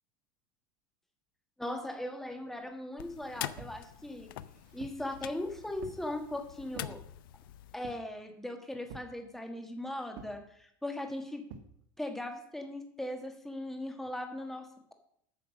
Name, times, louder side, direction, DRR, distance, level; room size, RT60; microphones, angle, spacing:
voice 1, 1.6-4.3 4.7-7.0 7.7-11.4 12.0-14.9, left 1 dB, 5° left, 5 dB, 1.3 m, -39 dB
sound 1, 3.0-7.8, left 13 dB, 85° left, 0.5 m, -45 dB
sound 2, 3.6-3.8 4.4-5.1 5.8-6.1 6.7-7.0 7.8-8.2 8.9-9.2 10.1-10.4 11.5-11.7, right 6 dB, 70° right, 1.2 m, -48 dB
9.2 x 5.8 x 7.1 m, 0.71 s
supercardioid pair, 145°, 11 cm